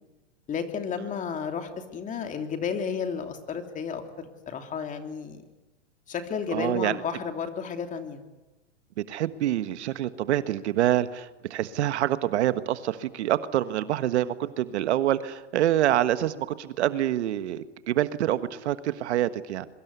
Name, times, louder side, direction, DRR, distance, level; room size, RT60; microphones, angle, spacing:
voice 1, 0.5-4.0 4.5-5.4 6.1-8.2, left 6 dB, 20° left, 5 dB, 3.0 m, -32 dB
voice 2, 6.5-6.9 9.1-19.7, right 12 dB, 65° right, 12 dB, 1.5 m, -26 dB
26.5 x 24.0 x 8.3 m, 1.1 s
hypercardioid pair, 135°, 36 cm